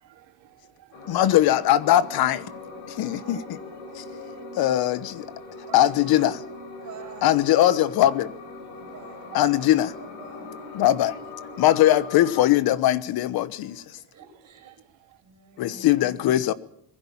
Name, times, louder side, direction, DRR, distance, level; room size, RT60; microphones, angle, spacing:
voice 1, 0.0-1.2 3.0-3.5 4.1-4.4 5.7-5.8 7.5-7.6 8.8-9.7 10.7-10.8 14.2-14.3 14.6-14.7, right 15 dB, 70° right, 3.7 m, -50 dB
sound 1, 0.9-12.4, left 3 dB, 70° left, 6.3 m, -40 dB
voice 2, 1.1-2.5 2.9-3.6 3.9-4.0 4.6-5.3 5.7-6.4 7.2-8.3 9.3-9.9 10.7-11.2 11.6-13.8 15.6-16.5, left 13 dB, 50° left, 1.2 m, -21 dB
voice 3, 6.8-7.3 8.7-9.4 10.0-10.6 14.1-14.8 15.2-16.2, right 7 dB, 35° right, 6.5 m, -47 dB
22.0 x 15.5 x 8.7 m
cardioid pair, 130°, 46 cm